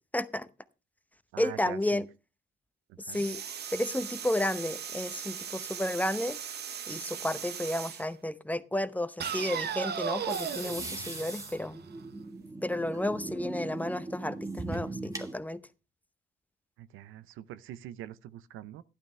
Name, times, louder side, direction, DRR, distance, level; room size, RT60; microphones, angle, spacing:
voice 1, 0.1-0.5 1.4-2.1 3.0-3.4 3.7-6.4 6.9-11.8 12.6-15.6, left 1 dB, 10° left, 0.7 m, -32 dB
voice 2, 1.3-2.0 2.9-3.2 16.8-18.8, right 12 dB, 90° right, 0.7 m, -44 dB
sound 1, 3.1-8.1 9.2-12.1, right 8 dB, 55° right, 1.0 m, -37 dB
sound 2, 10.3-15.3, right 2 dB, 15° right, 1.6 m, -39 dB
12.5 x 11.5 x 3.3 m
cardioid pair, 90°, 20 cm